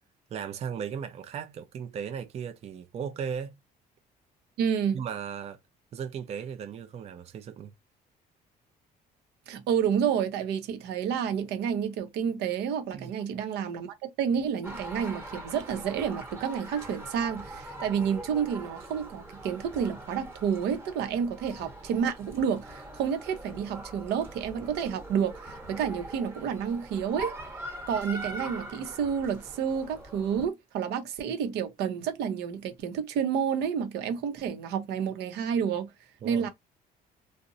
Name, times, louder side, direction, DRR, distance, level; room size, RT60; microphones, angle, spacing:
voice 1, 0.3-3.5 4.9-5.6 5.9-7.7 12.9-13.1 36.2-36.5, right 7 dB, 40° right, 0.4 m, -36 dB
voice 2, 4.6-5.0 9.5-27.3 27.9-35.9 36.2-36.5, right 7 dB, 80° right, 0.7 m, -30 dB
sound 1, 14.6-30.5, right 1 dB, 15° right, 1.0 m, -42 dB
2.5 x 2.0 x 2.6 m
cardioid pair, 110°, 17 cm